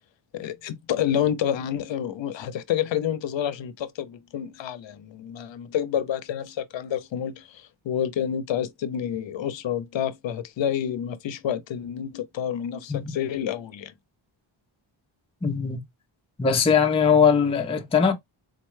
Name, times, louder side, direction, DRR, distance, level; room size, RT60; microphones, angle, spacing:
voice 1, 0.3-13.9, left 9 dB, 70° left, 0.6 m, -29 dB
voice 2, 15.4-15.8 16.4-18.1, left 6 dB, 15° left, 0.4 m, -20 dB
3.8 x 2.1 x 3.1 m
wide cardioid pair, 155°, 48 cm